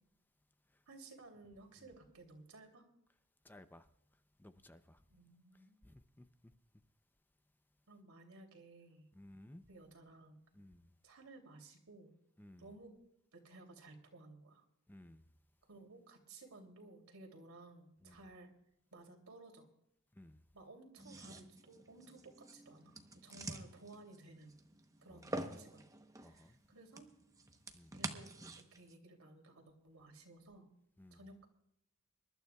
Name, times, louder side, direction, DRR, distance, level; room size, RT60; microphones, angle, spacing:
voice 1, 0.9-2.9 5.1-5.8 7.9-9.1 9.7-10.4 11.0-12.1 12.6-13.0 13.3-14.7 15.7-18.5 18.9-19.7 20.5-24.5 25.0-25.8 26.2-27.2 27.9-30.7 31.1-31.5, right 2 dB, 90° right, 2.8 m, -57 dB
voice 2, 3.4-5.0 5.5-6.5 9.1-9.6 10.5-11.0 12.4-12.8 14.9-15.3 18.0-18.3 20.1-20.5 25.1-25.4 26.2-26.6 27.7-28.0 31.0-31.3, left 1 dB, 10° left, 0.5 m, -59 dB
sound 1, 21.0-28.9, right 2 dB, 15° right, 0.9 m, -48 dB
26.0 x 12.0 x 2.3 m
head